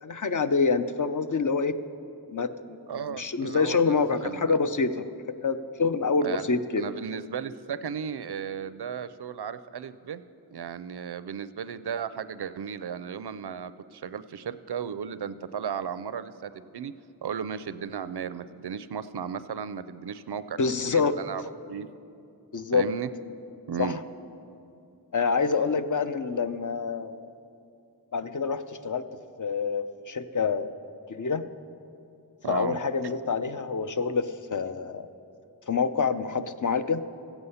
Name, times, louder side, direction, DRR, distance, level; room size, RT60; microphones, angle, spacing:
voice 1, 0.0-1.7 2.3-5.0 5.4-6.8 20.6-21.1 22.5-22.8 23.8-24.0 25.1-27.3 28.1-29.0 29.4-30.7 31.1-31.4 32.5-35.1 35.7-37.0, left 5 dB, 50° left, 10 dB, 0.6 m, -26 dB
voice 2, 2.9-4.0 4.2-4.6 6.2-6.4 6.8-10.2 10.5-16.9 17.2-20.6 20.9-21.4 21.7-21.9 22.7-23.1 23.7-24.0 32.4-32.8, right 7 dB, 80° right, 14 dB, 0.5 m, -35 dB
15.0 x 8.1 x 5.6 m, 2.6 s
wide cardioid pair, 50°, 39 cm